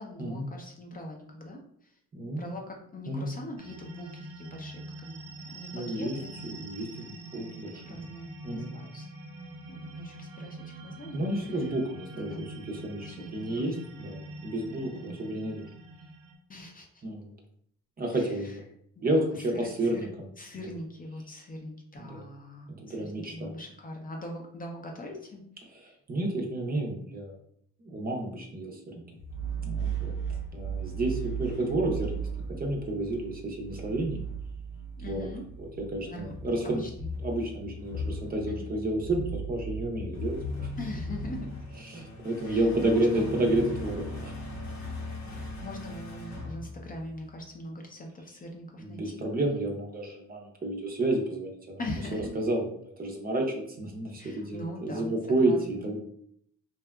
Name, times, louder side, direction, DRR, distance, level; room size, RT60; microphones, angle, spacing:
voice 1, 0.0-2.0 2.4-5.2 5.5-6.4 7.0-7.3 7.8-9.1 9.7-11.7 12.1-12.4 13.1-13.8 14.7-15.2 16.5-17.0 18.1-18.6 19.0-20.1 20.4-25.4 25.8-25.9 35.0-35.4 36.0-36.3 36.6-37.1 38.5-38.7 40.8-41.5 42.4-43.3 45.3-49.3 51.8-52.4 54.2-55.9, left 1 dB, 30° left, 1 dB, 0.5 m, -42 dB
voice 2, 2.1-2.4 3.1-3.3 5.7-6.2 6.4-7.8 8.4-8.7 11.1-15.6 17.0-17.3 18.0-18.6 19.0-20.1 22.0-22.2 22.7-23.5 25.7-27.4 27.8-29.0 29.6-30.1 30.5-32.3 32.6-34.2 35.1-35.2 35.6-36.8 37.2-40.7 41.8-44.3 48.8-51.8 52.3-56.0, right 1 dB, 30° right, 0 dB, 0.6 m, -31 dB
sound 1, 3.6-16.4, right 2 dB, 85° right, 0.7 m, -45 dB
sound 2, 29.2-47.3, right 2 dB, 70° left, 0.7 m, -37 dB
2.7 x 2.2 x 2.2 m, 0.66 s
cardioid pair, 90°, 30 cm